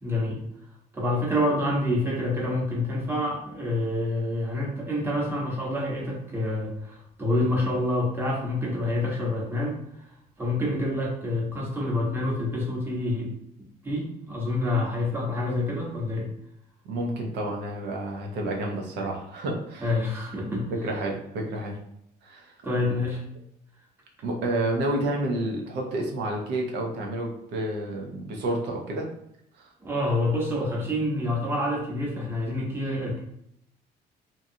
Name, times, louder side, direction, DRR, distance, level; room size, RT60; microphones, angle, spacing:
voice 1, 0.0-0.4 0.9-9.8 10.4-13.3 13.8-16.3 19.8-20.7 22.6-23.2 29.8-33.2, left 1 dB, 15° right, -3 dB, 0.9 m, -27 dB
voice 2, 16.8-19.9 20.8-21.8 22.2-22.5 24.2-29.1 29.6-29.7, right 1 dB, 85° right, 1 dB, 0.7 m, -30 dB
2.8 x 2.3 x 2.7 m, 0.76 s
cardioid pair, 110°, 17 cm